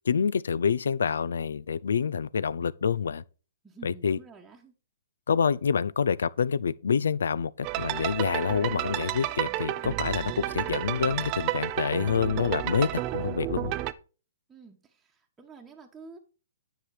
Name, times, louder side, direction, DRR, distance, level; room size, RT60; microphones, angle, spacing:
voice 1, 0.0-3.2 3.8-4.2 5.3-13.7, left 6 dB, 80° left, 0.5 m, -27 dB
voice 2, 3.6-4.7 14.5-16.2, right 4 dB, 10° right, 1.2 m, -49 dB
sound 1, 7.6-13.9, right 15 dB, 30° right, 0.5 m, -31 dB
9.8 x 5.8 x 4.9 m
hypercardioid pair, 145°, 0 cm